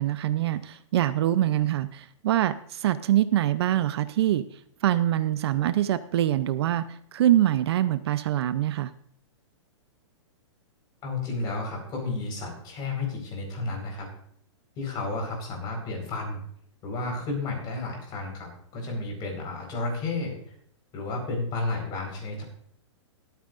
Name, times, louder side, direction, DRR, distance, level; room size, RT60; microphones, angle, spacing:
voice 1, 0.0-4.4 4.8-6.8 7.1-8.9, right 12 dB, 55° right, 14 dB, 0.6 m, -24 dB
voice 2, 11.0-14.1 14.8-16.4 16.8-20.4 20.9-22.4, left 3 dB, 25° left, 2 dB, 4.4 m, -32 dB
21.5 x 9.2 x 2.5 m, 0.65 s
hypercardioid pair, 150°, 16 cm